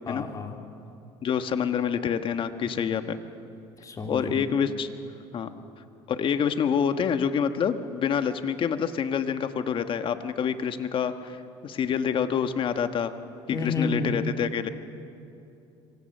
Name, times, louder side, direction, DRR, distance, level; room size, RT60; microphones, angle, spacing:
voice 1, 0.1-0.6 2.8-2.9 3.8-4.5 13.5-14.2, left 3 dB, 30° left, 3 dB, 3.4 m, -31 dB
voice 2, 1.2-3.2 4.1-4.9 5.3-5.5 6.1-13.1 13.6-14.7, left 7 dB, 50° left, 9 dB, 1.5 m, -27 dB
26.0 x 24.0 x 6.7 m, 2.7 s
supercardioid pair, 95°, 12 cm